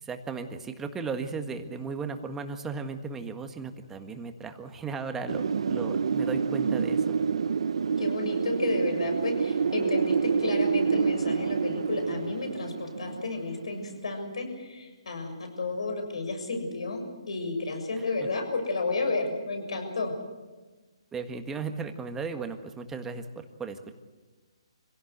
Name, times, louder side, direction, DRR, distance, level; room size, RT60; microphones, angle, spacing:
voice 1, 0.0-7.0 21.1-23.9, right 4 dB, 10° right, 6 dB, 1.6 m, -36 dB
Wind, 5.3-14.0, right 6 dB, 70° right, 0.7 m, -28 dB
voice 2, 8.0-20.1, left 3 dB, 75° left, 5 dB, 6.9 m, -32 dB
26.0 x 17.0 x 8.1 m, 1.2 s
hypercardioid pair, 150°, 3 cm